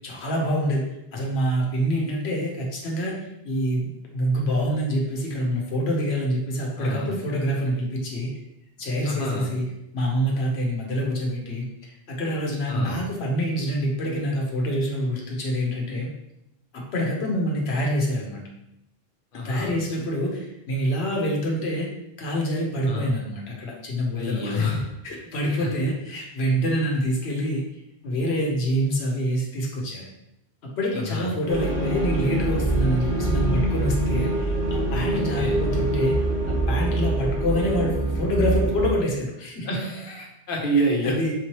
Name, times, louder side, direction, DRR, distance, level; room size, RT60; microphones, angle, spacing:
voice 1, 0.0-0.9 1.1-8.4 8.8-16.1 16.7-18.4 19.4-21.9 22.2-24.8 25.0-27.6 28.0-30.1 30.8-36.2 36.5-39.8 41.0-41.3, equal, 85° left, -1 dB, 1.1 m, -26 dB
voice 2, 6.8-7.1 9.0-9.5 12.7-13.0 19.3-19.7 22.9-23.1 24.1-24.9 25.4-25.7 30.9-31.3 35.1-35.6 39.6-41.3, equal, 60° left, 0 dB, 0.9 m, -28 dB
sound 1, 31.5-38.9, right 2 dB, 55° right, 1.2 m, -24 dB
4.0 x 3.0 x 2.9 m, 0.84 s
omnidirectional pair, 1.0 m